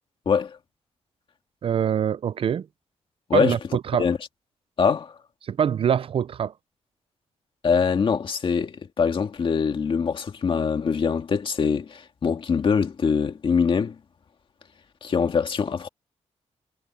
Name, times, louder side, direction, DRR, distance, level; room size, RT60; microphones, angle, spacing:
voice 1, 0.3-0.6 3.3-3.6 4.0-4.2 4.8-5.1 7.6-14.0 15.0-15.9, left 6 dB, 50° left, 2.0 m, -23 dB
voice 2, 1.6-2.7 3.3-4.1 5.4-6.5, right 8 dB, 55° right, 0.4 m, -24 dB
wide cardioid pair, 150°, 11 cm